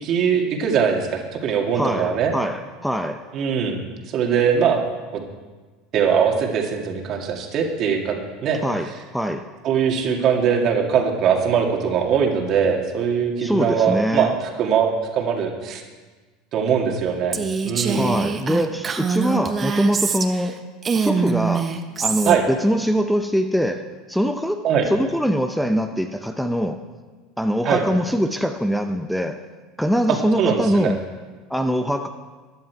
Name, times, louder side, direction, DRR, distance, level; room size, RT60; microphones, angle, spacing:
voice 1, 0.0-2.3 3.3-3.8 4.1-4.8 5.1-5.2 5.9-8.6 9.6-14.3 14.6-15.8 16.5-17.4 17.6-18.2 22.3-22.4 24.6-24.9 27.6-27.8 30.1-30.9, right 7 dB, 50° right, 2 dB, 2.0 m, -21 dB
voice 2, 1.7-3.2 8.6-9.4 13.4-14.3 17.9-20.6 20.9-21.7 22.0-24.6 24.9-26.8 27.4-29.4 29.8-31.0 31.5-32.1, equal, ahead, 7 dB, 0.7 m, -23 dB
Female speech woman speaking, 17.3-20.5 20.8-22.4, right 5 dB, 30° right, 1.0 m, -24 dB
14.5 x 10.5 x 4.6 m, 1.4 s
hypercardioid pair, 95°, 0 cm